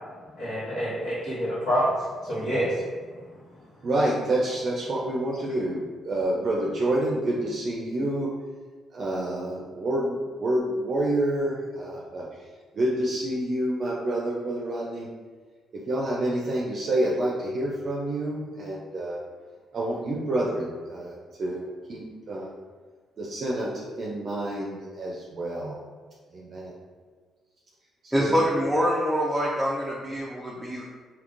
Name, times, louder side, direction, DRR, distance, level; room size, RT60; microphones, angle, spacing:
voice 1, 0.4-2.8, equal, 75° left, -13 dB, 1.4 m, -27 dB
voice 2, 3.8-8.3 8.9-12.2 12.7-15.1 15.9-19.2 19.7-21.6 21.9-22.5 23.2-25.8 26.3-26.7 28.0-28.5, right 1 dB, 50° right, -3 dB, 0.5 m, -28 dB
voice 3, 28.1-30.8, equal, 5° right, -5 dB, 0.5 m, -25 dB
3.5 x 2.8 x 2.5 m, 1.5 s
cardioid pair, 90°, 0 cm